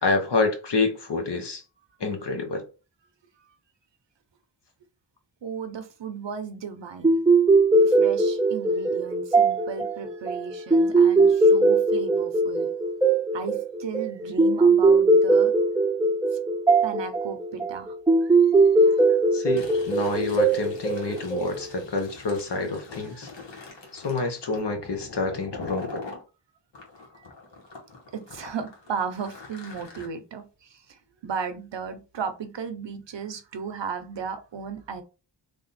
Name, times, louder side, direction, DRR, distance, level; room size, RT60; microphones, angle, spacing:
voice 1, 0.0-1.6 2.0-2.6 19.3-23.3 23.9-26.0, left 3 dB, 70° left, 1.0 m, -28 dB
voice 2, 5.4-7.2 7.8-12.7 13.3-15.5 16.8-18.0 18.2-19.2 21.0-21.2 21.5-21.6 23.0-23.3 27.2-27.3 28.1-35.0, right 6 dB, 80° right, 0.7 m, -35 dB
sound 1, 7.0-21.8, right 3 dB, 10° right, 0.5 m, -20 dB
Fill (with liquid), 19.4-26.2 26.7-30.1, left 3 dB, 90° left, 1.2 m, -43 dB
3.4 x 2.3 x 4.1 m
wide cardioid pair, 60°, 43 cm